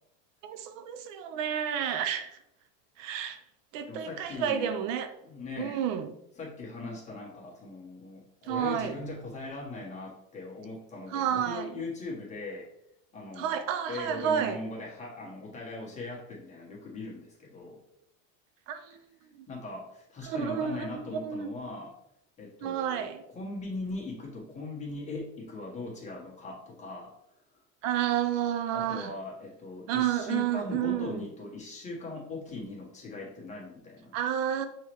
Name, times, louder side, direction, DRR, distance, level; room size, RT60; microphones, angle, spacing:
voice 1, 0.4-2.4 3.0-3.4 3.7-5.1 5.6-6.1 8.5-8.9 11.1-11.8 13.4-14.6 18.7-19.0 19.3-19.5 20.2-21.5 22.6-23.2 27.8-29.1 29.9-31.2 34.1-34.7, right 9 dB, 85° right, 0.6 m, -30 dB
voice 2, 3.9-4.8 5.2-5.8 6.4-12.7 13.1-13.6 13.9-17.8 19.5-21.9 22.4-27.2 28.7-34.1, left 2 dB, 20° left, 1.1 m, -40 dB
5.6 x 3.1 x 3.0 m
cardioid pair, 155°, 37 cm